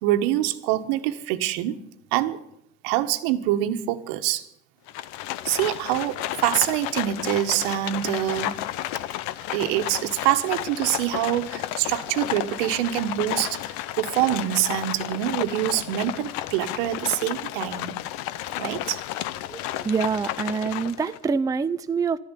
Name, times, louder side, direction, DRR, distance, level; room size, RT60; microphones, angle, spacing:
voice 1, 0.0-1.8 2.1-2.4 2.8-4.5 5.4-8.6 9.5-13.6 14.0-18.0 18.6-19.0, right 13 dB, 70° right, 9 dB, 1.5 m, -25 dB
Livestock farm animals working animals, 4.9-21.2, left 14 dB, 65° left, 0.9 m, -32 dB
voice 2, 19.5-22.2, right 5 dB, 10° right, 11 dB, 0.5 m, -26 dB
12.5 x 10.5 x 9.9 m, 0.77 s
hypercardioid pair, 90°, 31 cm